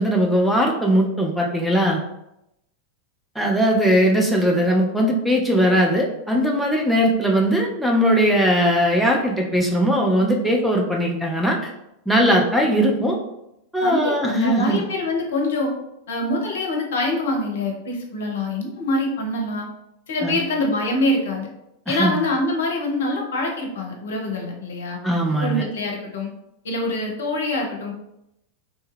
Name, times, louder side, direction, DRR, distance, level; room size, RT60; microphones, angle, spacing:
voice 1, 0.0-2.0 3.4-11.7 12.1-13.2 13.7-14.8 20.2-20.4 21.9-22.2 25.0-25.6, equal, ahead, -2 dB, 0.4 m, -19 dB
voice 2, 13.8-15.7 16.1-19.7 20.1-21.5 21.9-25.0 25.4-26.3 26.6-27.9, left 1 dB, 60° left, 0 dB, 0.6 m, -25 dB
3.1 x 2.2 x 3.1 m, 0.84 s
figure-of-eight pair, 90°, 0 cm